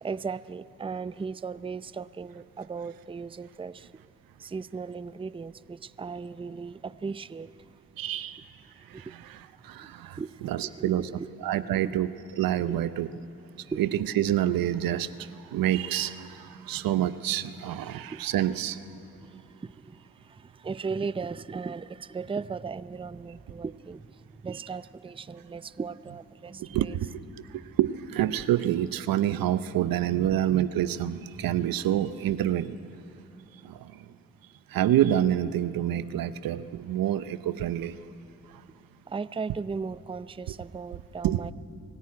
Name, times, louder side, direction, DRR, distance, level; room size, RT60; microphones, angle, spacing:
voice 1, 0.0-3.9 4.4-7.7 8.9-9.2 9.8-9.9 10.2-11.3 11.5-12.0 12.6-12.9 13.7-13.8 17.7-18.2 19.2-27.0 30.1-30.4 31.4-31.7 34.1-34.2 39.1-41.5, right 5 dB, 15° right, 16 dB, 0.5 m, -37 dB
voice 2, 8.0-8.4 8.9-9.4 9.6-10.2 10.4-11.0 11.4-12.1 12.4-13.1 13.8-13.9 14.2-18.8 26.6-27.1 27.8-32.8 33.6-34.0 34.7-38.0 41.2-41.5, right 12 dB, 75° right, 14 dB, 0.7 m, -27 dB
23.5 x 14.0 x 9.6 m, 2.7 s
supercardioid pair, 40°, 35 cm